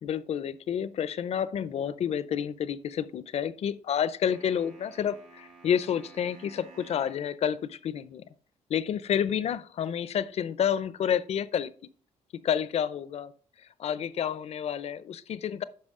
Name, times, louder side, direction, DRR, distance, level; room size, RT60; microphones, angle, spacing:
voice 1, 0.0-8.2 8.7-11.7 12.4-13.3 13.8-15.6, left 8 dB, 55° left, 0.5 m, -29 dB
sound 1, 4.3-7.3, right 4 dB, 85° right, 2.3 m, -53 dB
9.7 x 5.8 x 3.7 m
cardioid pair, 150°, 13 cm